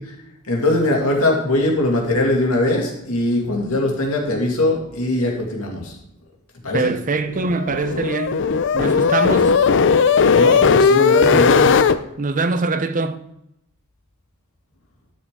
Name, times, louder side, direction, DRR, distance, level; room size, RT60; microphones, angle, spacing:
voice 1, 0.5-6.0 6.6-6.9 10.2-11.8, left 1 dB, 80° left, 2.3 m, -21 dB
voice 2, 6.7-8.4 8.7-9.6 12.2-13.2, right 3 dB, 40° right, 0.7 m, -23 dB
sound 1, 7.3-12.0, left 5 dB, 60° left, 0.5 m, -16 dB
12.5 x 6.5 x 3.7 m
head